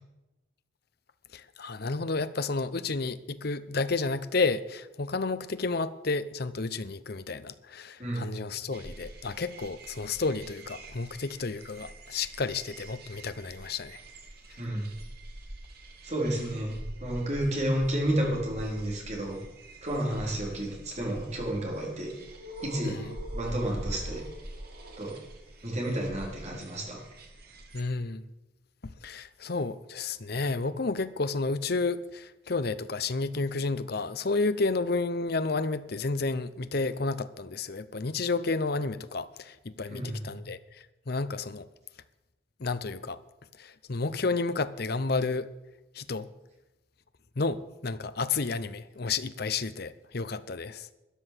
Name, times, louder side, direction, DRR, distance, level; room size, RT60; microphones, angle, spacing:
voice 1, 1.3-14.0 22.8-23.1 27.7-28.2 28.8-41.7 42.6-43.2 43.6-45.5 45.9-46.3 47.4-50.9, left 3 dB, 50° left, 13 dB, 0.7 m, -31 dB
voice 2, 8.0-8.3 14.6-14.9 16.0-19.4 19.8-22.1 22.6-23.0 23.3-24.3 25.0-25.2 25.6-27.0 39.9-40.3, right 1 dB, 35° right, -1 dB, 3.7 m, -31 dB
sound 1, 8.7-27.8, right 1 dB, 50° right, 2.1 m, -44 dB
12.5 x 10.0 x 7.5 m, 1.0 s
head